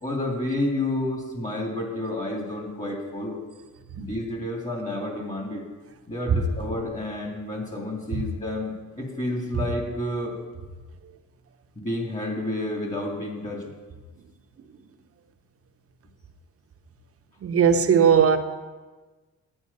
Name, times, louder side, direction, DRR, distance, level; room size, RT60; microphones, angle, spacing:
voice 1, 0.0-3.4 4.0-5.6 6.1-10.3 11.8-13.7, left 1 dB, 25° left, 2.6 m, -30 dB
voice 2, 17.4-18.4, right 7 dB, 50° right, 1.0 m, -18 dB
9.8 x 8.9 x 5.5 m
cardioid pair, 90°, 30 cm